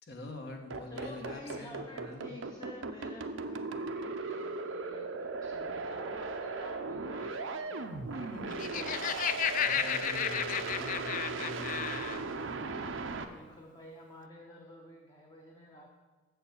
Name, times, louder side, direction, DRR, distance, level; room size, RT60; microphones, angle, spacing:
voice 1, 0.1-2.3 9.6-12.0 12.4-12.9, left 1 dB, 60° left, 3 dB, 1.1 m, -45 dB
sound 1, 0.7-13.2, right 3 dB, 85° right, 0.7 m, -37 dB
voice 2, 0.9-9.2 13.1-16.0, left 1 dB, 20° left, 1 dB, 0.8 m, -50 dB
Laughter, 8.4-12.2, left 9 dB, 45° left, 0.3 m, -33 dB
7.2 x 6.9 x 7.2 m, 1.3 s
head